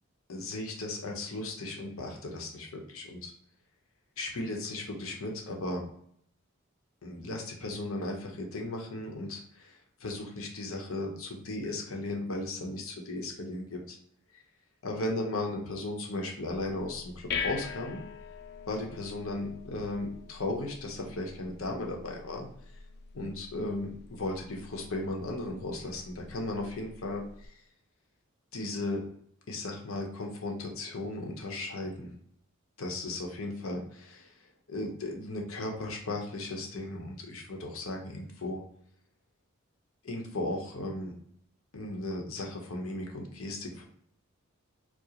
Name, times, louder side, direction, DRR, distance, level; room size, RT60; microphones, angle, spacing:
voice 1, 0.3-3.3 4.2-5.8 7.0-14.0 14.8-18.0 18.7-22.5 23.1-27.6 28.5-29.0 29.5-32.1 32.8-38.6 40.0-41.1 41.7-43.8, left 2 dB, 75° left, 1 dB, 0.9 m, -36 dB
sound 1, 16.5-27.5, left 6 dB, 50° left, 0.3 m, -43 dB
4.8 x 2.1 x 2.9 m, 0.68 s
head